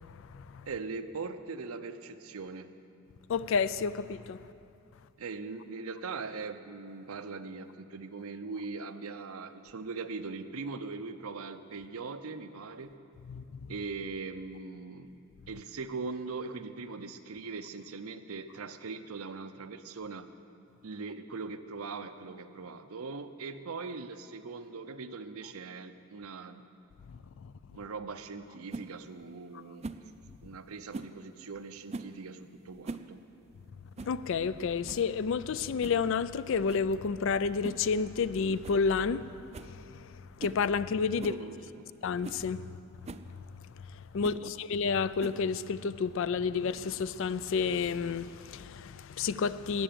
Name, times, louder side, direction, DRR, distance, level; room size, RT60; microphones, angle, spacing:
voice 1, 0.2-0.7 3.3-4.4 13.3-13.7 27.4-27.5 34.0-39.3 39.7-40.1 40.4-41.3 42.0-42.7 43.9-49.8, left 5 dB, 60° left, 0.4 m, -30 dB
voice 2, 0.7-2.7 5.2-12.9 13.7-15.2 15.5-20.3 20.8-26.7 27.7-29.9 30.4-32.4 32.6-33.2 41.2-41.9 44.2-44.5, right 4 dB, 90° right, 0.7 m, -41 dB
sound 1, 28.7-28.9 29.8-30.1 30.9-31.2 31.9-32.2 32.7-33.1 33.4-33.5 34.0-34.2 34.5-34.6 34.8-35.1 35.8-36.0 36.7-36.9 37.6-37.9 38.2-38.3 38.6-38.8 39.1-39.2 39.5-39.8 40.4-40.6 41.2-41.4 41.9-42.0 42.2-42.4 43.0-43.3 44.2-44.4 45.2-45.6, right 3 dB, 30° right, 0.4 m, -42 dB
13.5 x 9.0 x 7.6 m
head